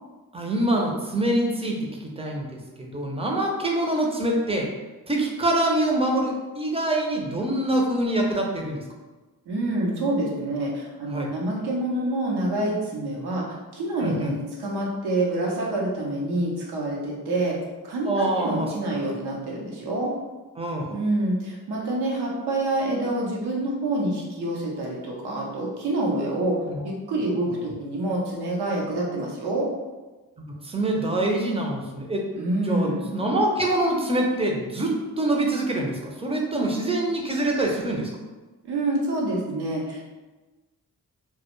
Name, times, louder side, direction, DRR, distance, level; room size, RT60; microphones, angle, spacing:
voice 1, 0.3-4.7 5.1-8.8 11.1-11.3 14.0-14.3 18.0-18.7 20.6-20.8 26.7-26.8 30.6-32.3 32.7-38.1, right 1 dB, 15° right, 0 dB, 0.6 m, -25 dB
voice 2, 9.5-13.4 13.7-17.6 17.8-20.1 20.9-26.6 26.8-29.7 32.3-33.2 38.6-40.0, right 1 dB, 80° right, -3 dB, 0.7 m, -27 dB
2.2 x 2.0 x 3.0 m, 1.2 s
supercardioid pair, 40°, 39 cm